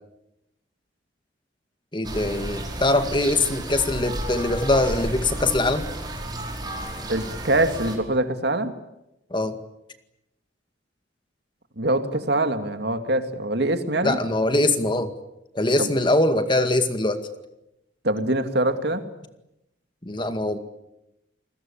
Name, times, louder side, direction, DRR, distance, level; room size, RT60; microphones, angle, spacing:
voice 1, 1.9-5.9 9.3-9.5 14.0-15.1 15.5-17.2 20.0-20.6, left 2 dB, 25° left, 8 dB, 2.1 m, -22 dB
sound 1, 2.0-8.0, right 1 dB, 25° right, 5.1 m, -32 dB
voice 2, 7.1-8.7 11.8-14.2 15.8-15.9 18.0-19.1, right 1 dB, 60° right, 8 dB, 2.4 m, -24 dB
29.0 x 21.0 x 8.8 m, 0.88 s
head